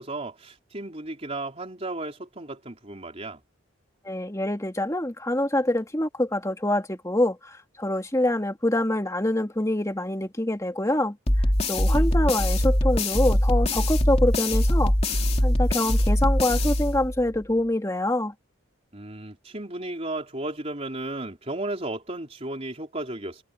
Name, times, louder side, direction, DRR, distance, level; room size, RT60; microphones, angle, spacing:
voice 1, 0.0-3.4 11.9-12.1 18.9-23.4, right 2 dB, 35° right, 3.9 m, -34 dB
voice 2, 4.0-11.2 11.7-14.9 15.4-18.3, left 1 dB, 15° left, 2.5 m, -25 dB
sound 1, 11.3-17.4, left 1 dB, 30° left, 2.9 m, -22 dB
head